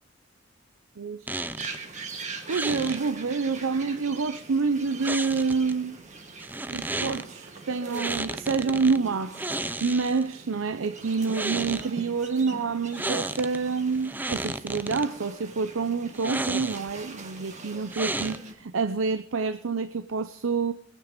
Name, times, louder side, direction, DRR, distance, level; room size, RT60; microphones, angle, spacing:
voice 1, 1.0-1.3 2.5-6.0 6.7-9.4 9.8-20.7, right 4 dB, 85° right, 0.6 m, -27 dB
sound 1, 1.3-1.8 2.5-3.0 5.0-5.7 6.4-7.3 7.9-9.0 9.3-10.3 11.1-11.9 12.9-13.6 13.9-15.1 16.1-17.0 17.9-18.6, right 2 dB, 10° right, 0.5 m, -32 dB
sound 2, 1.6-18.5, right 3 dB, 35° right, 1.6 m, -43 dB
21.5 x 9.3 x 5.1 m
head